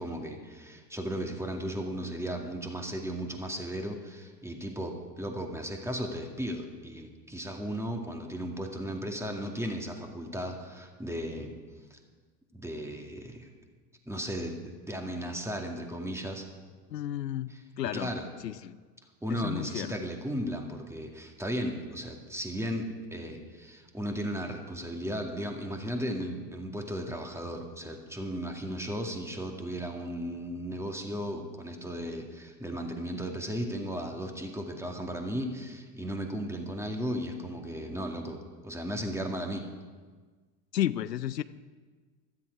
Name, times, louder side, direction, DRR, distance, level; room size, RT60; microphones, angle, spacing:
voice 1, 0.0-11.5 11.9-12.0 12.5-13.5 14.1-14.5 14.9-16.4 17.5-18.3 19.2-39.7, equal, 5° right, 3 dB, 2.2 m, -35 dB
voice 2, 16.9-17.5 17.8-18.1 18.4-18.8 19.3-19.9 40.7-41.4, left 12 dB, 85° left, 15 dB, 0.6 m, -32 dB
15.5 x 13.0 x 4.8 m, 1.4 s
figure-of-eight pair, 75°, 48 cm